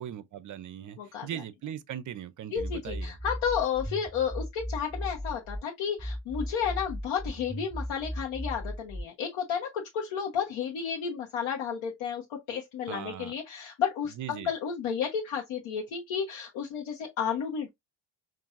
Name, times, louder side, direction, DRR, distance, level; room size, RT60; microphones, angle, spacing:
voice 1, 0.0-3.2 12.9-13.3 14.2-14.5, right 10 dB, 40° right, 0.5 m, -39 dB
voice 2, 1.0-1.3 2.5-17.7, left 7 dB, 80° left, 1.1 m, -32 dB
sound 1, 2.6-5.6 6.0-9.0, equal, 5° left, 2.6 m, -36 dB
5.5 x 2.6 x 2.4 m
cardioid pair, 135°, 49 cm